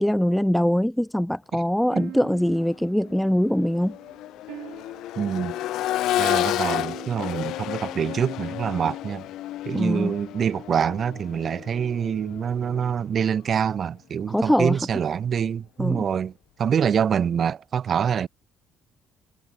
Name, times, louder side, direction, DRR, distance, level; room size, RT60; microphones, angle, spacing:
voice 1, 0.0-4.0 9.7-10.1 14.3-14.8 15.8-16.0, equal, ahead, 0.6 m, -22 dB
sound 1, 1.9-9.0, right 17 dB, 90° right, 2.3 m, -44 dB
Accelerating revving vroom, 2.5-2.6 3.1-13.0 14.7-14.8, left 14 dB, 75° left, 0.7 m, -31 dB
voice 2, 5.2-5.6 6.2-9.3 9.6-16.3 16.6-18.3, right 8 dB, 40° right, 0.7 m, -25 dB
cardioid pair, 140°, 0 cm